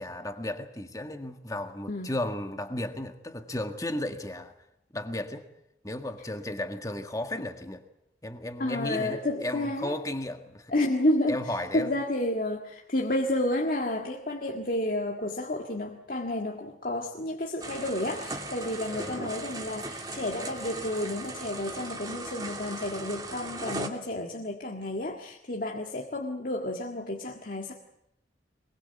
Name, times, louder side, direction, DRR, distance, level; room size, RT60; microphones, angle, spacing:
voice 1, 0.0-4.5 4.9-5.5 5.8-7.8 8.2-10.7 11.3-11.9 18.9-19.3, left 1 dB, 20° left, 1.7 m, -34 dB
voice 2, 8.6-9.9 10.7-11.4 11.7-27.7, left 1 dB, 50° left, 1.8 m, -30 dB
sound 1, 17.6-23.9, right 2 dB, 20° right, 2.3 m, -38 dB
23.0 x 21.0 x 8.3 m
head